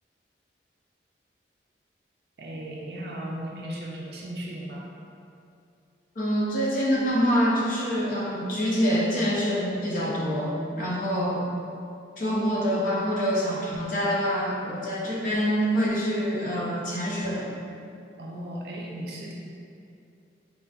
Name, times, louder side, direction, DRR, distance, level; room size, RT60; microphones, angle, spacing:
voice 1, 2.4-4.9 18.2-19.3, right 1 dB, 60° right, -2 dB, 0.4 m, -36 dB
voice 2, 6.2-11.5 12.2-17.5, equal, 45° left, -5 dB, 0.6 m, -26 dB
3.9 x 3.5 x 2.3 m, 2.5 s
head